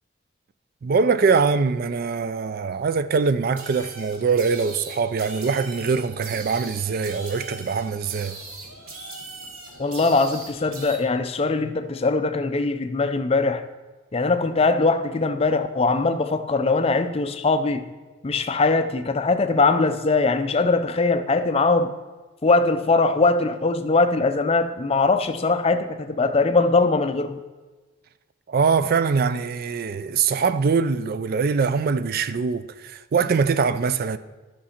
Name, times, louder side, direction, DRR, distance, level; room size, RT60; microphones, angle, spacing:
voice 1, 0.8-8.4 28.5-34.2, right 5 dB, 45° right, 0.3 m, -23 dB
sound 1, 3.6-11.0, right 2 dB, 90° right, 1.6 m, -40 dB
voice 2, 9.8-13.6 14.1-17.8 18.2-21.9 22.4-27.4, left 3 dB, 30° left, 0.4 m, -21 dB
11.0 x 5.9 x 4.3 m
head